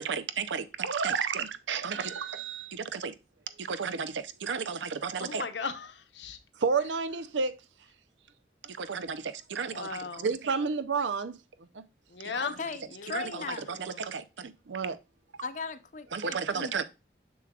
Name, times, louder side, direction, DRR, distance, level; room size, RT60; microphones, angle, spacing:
voice 1, 0.0-3.2 3.6-5.4 6.6-7.6 8.6-11.4 11.7-11.8 13.1-15.0 16.1-16.8, right 5 dB, 90° right, 0.6 m, -32 dB
voice 2, 5.2-6.4 9.7-10.3 12.1-12.6 12.9-14.0, left 5 dB, 85° left, 0.8 m, -38 dB
voice 3, 12.4-13.7 15.4-16.8, left 5 dB, 45° left, 0.5 m, -38 dB
6.8 x 6.2 x 2.3 m
head